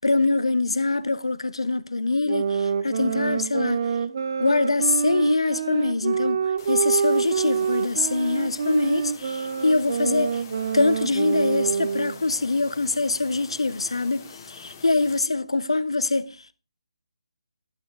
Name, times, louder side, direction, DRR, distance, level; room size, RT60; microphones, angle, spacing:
voice 1, 0.0-3.8 4.4-10.4 10.7-16.4, left 3 dB, 65° left, 0.7 m, -24 dB
sound 1, 2.3-12.2, right 6 dB, 40° right, 0.7 m, -26 dB
sound 2, 6.6-15.2, left 6 dB, 30° left, 1.6 m, -45 dB
11.5 x 9.3 x 3.4 m
figure-of-eight pair, 145°, 3 cm